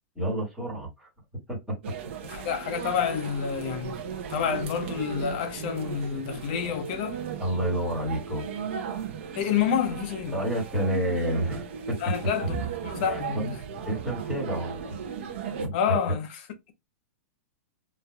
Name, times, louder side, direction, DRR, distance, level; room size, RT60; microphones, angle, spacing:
voice 1, 0.1-1.1 7.4-8.4 10.3-12.0 13.1-13.5 13.8-15.0 15.6-16.0, right 1 dB, ahead, 1.5 m, -29 dB
sound 1, 1.8-15.7, right 6 dB, 50° right, 0.7 m, -36 dB
voice 2, 2.3-7.2 9.4-10.4 12.0-13.5 15.7-16.4, left 8 dB, 35° left, 0.6 m, -29 dB
4.2 x 2.5 x 2.2 m
supercardioid pair, 175°, 8 cm